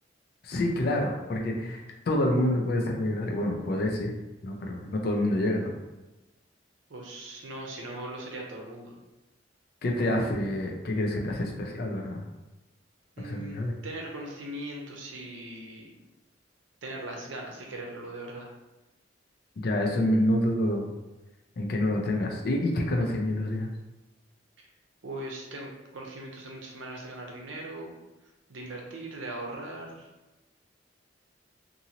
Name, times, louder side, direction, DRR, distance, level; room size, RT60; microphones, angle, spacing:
voice 1, 0.4-4.1 4.4-5.7 9.8-12.2 13.2-13.8 19.6-20.9 21.6-23.7, left 1 dB, 55° left, 1 dB, 0.4 m, -27 dB
voice 2, 6.9-8.9 13.2-15.9 16.8-18.5 25.0-27.9 28.5-30.1, right 1 dB, 85° right, 0 dB, 0.6 m, -39 dB
2.7 x 2.6 x 2.8 m, 1.0 s
head